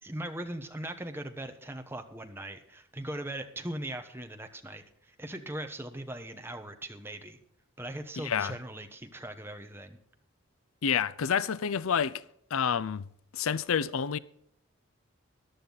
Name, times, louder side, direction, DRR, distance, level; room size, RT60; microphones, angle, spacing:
voice 1, 0.0-7.4 7.8-10.0, right 1 dB, 10° right, 1.2 m, -40 dB
voice 2, 8.2-8.5 10.8-12.2 12.5-13.1 13.3-14.2, left 7 dB, 70° left, 0.5 m, -28 dB
14.5 x 11.5 x 4.1 m
head